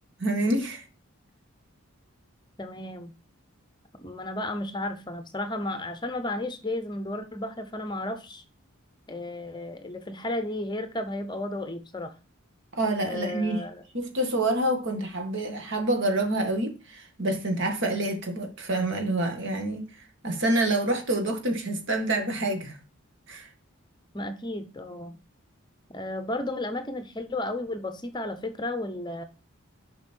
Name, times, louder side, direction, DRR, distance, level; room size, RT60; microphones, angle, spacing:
voice 1, 0.2-0.8 12.7-13.6 13.9-19.8 20.2-22.8 23.3-23.5, right 1 dB, 55° right, 1.9 m, -27 dB
voice 2, 2.6-3.1 4.0-8.4 9.1-12.1 13.0-13.8 24.1-25.2 25.9-29.2, left 1 dB, 20° left, 0.8 m, -33 dB
7.2 x 5.4 x 4.4 m
head